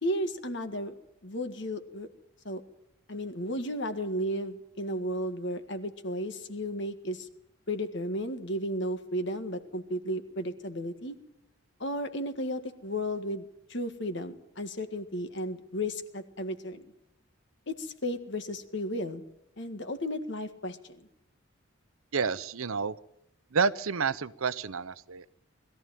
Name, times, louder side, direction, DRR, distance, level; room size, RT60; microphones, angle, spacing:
voice 1, 0.0-0.9 1.2-2.1 2.5-2.6 3.1-7.3 7.7-11.2 11.8-16.9 17.7-19.2 19.6-21.1, equal, 55° left, 9 dB, 1.8 m, -34 dB
voice 2, 22.1-23.0 23.5-25.2, right 5 dB, 80° right, 16 dB, 0.8 m, -29 dB
21.0 x 14.0 x 9.1 m, 0.79 s
head